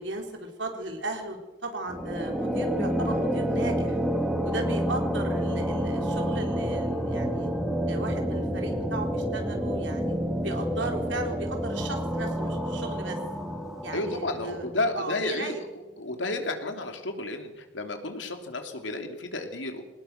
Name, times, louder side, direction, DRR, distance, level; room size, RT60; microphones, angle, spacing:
voice 1, 0.0-4.0 4.4-7.5 7.9-10.1 10.4-13.2 13.8-14.7 14.9-15.6, right 2 dB, 70° right, 3 dB, 4.2 m, -36 dB
sound 1, 1.9-15.0, equal, ahead, 2.4 m, -29 dB
voice 2, 13.9-15.5 16.0-19.8, left 2 dB, 75° left, 5 dB, 3.2 m, -32 dB
23.0 x 19.0 x 6.7 m, 1.1 s
head